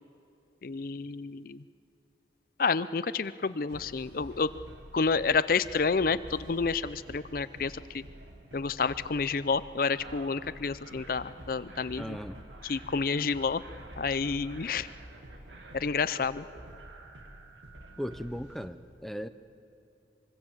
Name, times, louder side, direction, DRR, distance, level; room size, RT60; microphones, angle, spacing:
voice 1, 0.6-1.6 2.6-4.5 4.9-8.0 8.5-12.2 12.6-13.6 14.0-14.9 15.7-16.5, left 5 dB, 50° left, 15 dB, 0.5 m, -29 dB
sound 1, 3.7-18.7, right 1 dB, 85° right, 2.5 m, -48 dB
voice 2, 12.0-12.4 18.0-19.3, equal, ahead, 10 dB, 0.6 m, -37 dB
24.5 x 24.0 x 7.3 m, 2.8 s
head